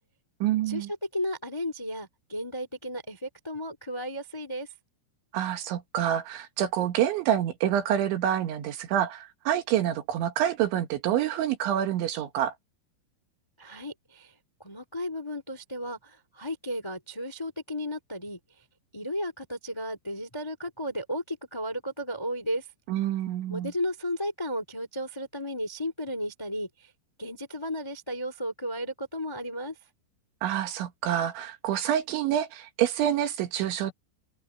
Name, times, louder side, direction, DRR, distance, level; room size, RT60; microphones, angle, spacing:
voice 1, 0.4-0.9 5.3-12.5 22.9-23.7 30.4-33.9, right 11 dB, 75° right, 4.1 m, -27 dB
voice 2, 1.1-4.7 13.6-14.3 14.6-18.4 18.9-22.6 23.5-26.7 27.2-29.7, equal, 20° left, 0.7 m, -34 dB
omnidirectional pair, 5.5 m